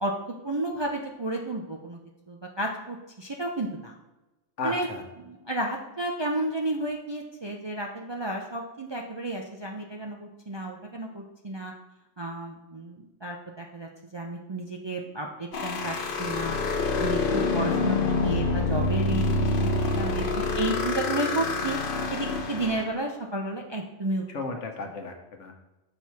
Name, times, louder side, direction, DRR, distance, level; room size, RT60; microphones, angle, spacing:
voice 1, 0.0-2.0 2.3-3.9 4.6-4.9 5.2-11.7 12.2-16.6 17.0-21.8 22.1-24.2, right 2 dB, 35° right, 0 dB, 0.4 m, -32 dB
voice 2, 4.6-5.0 24.3-25.6, left 3 dB, 85° left, 4 dB, 1.3 m, -34 dB
sound 1, 15.5-22.8, left 3 dB, 50° left, 0.9 m, -26 dB
6.0 x 4.3 x 4.7 m, 1.0 s
omnidirectional pair, 1.2 m